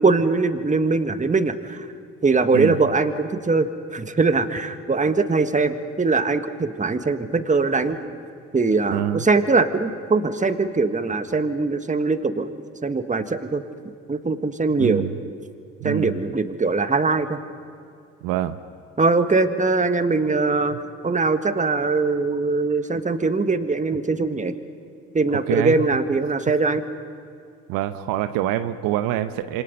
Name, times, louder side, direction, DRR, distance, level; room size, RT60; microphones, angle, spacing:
voice 1, 0.0-1.8 2.2-8.0 8.5-12.5 12.8-13.6 14.1-15.0 15.8-17.4 19.0-20.8 21.0-24.5 25.1-26.8, right 3 dB, 20° right, 9 dB, 1.6 m, -21 dB
voice 2, 8.9-9.3 14.8-15.1 15.8-16.2 18.2-18.6 25.3-25.9 27.7-29.6, right 13 dB, 70° right, 10 dB, 1.0 m, -25 dB
27.0 x 25.5 x 5.3 m, 2.4 s
hypercardioid pair, 55°, 35 cm